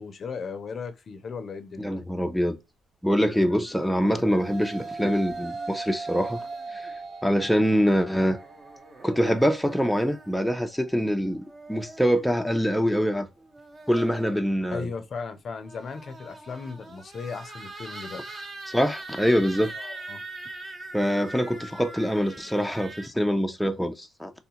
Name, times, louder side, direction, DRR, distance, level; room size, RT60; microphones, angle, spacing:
voice 1, 0.0-1.9 14.7-18.4 19.7-20.2, left 5 dB, 50° left, 0.5 m, -36 dB
voice 2, 1.8-2.6 3.0-6.4 6.7-6.9 7.2-8.4 9.0-11.4 11.7-13.3 13.9-14.9 18.7-19.7 20.9-24.3, equal, ahead, 0.4 m, -24 dB
sound 1, 3.2-6.9 8.1-10.4 11.3-12.3 13.4-14.5 15.5-23.1, right 2 dB, 35° right, 0.9 m, -43 dB
sound 2, 3.9-13.1, right 3 dB, 60° right, 0.6 m, -40 dB
3.5 x 2.3 x 2.8 m
cardioid pair, 90°, 0 cm